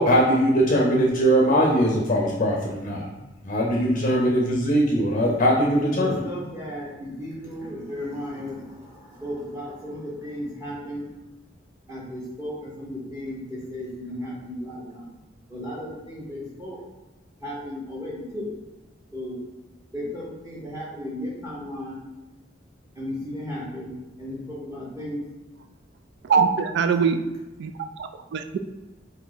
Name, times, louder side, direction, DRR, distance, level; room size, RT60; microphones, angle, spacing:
voice 1, 0.0-3.1 3.4-6.2, equal, 40° left, -2 dB, 0.6 m, -21 dB
voice 2, 5.7-11.1 11.9-15.1 15.5-16.8 17.4-18.5 19.1-19.4 19.9-22.0 22.9-23.9 24.2-25.2, left 1 dB, 15° right, -6 dB, 0.9 m, -35 dB
voice 3, 26.2-27.2 27.6-27.7 28.0-28.6, right 6 dB, 65° right, 8 dB, 0.3 m, -22 dB
3.4 x 2.7 x 3.9 m, 1.1 s
head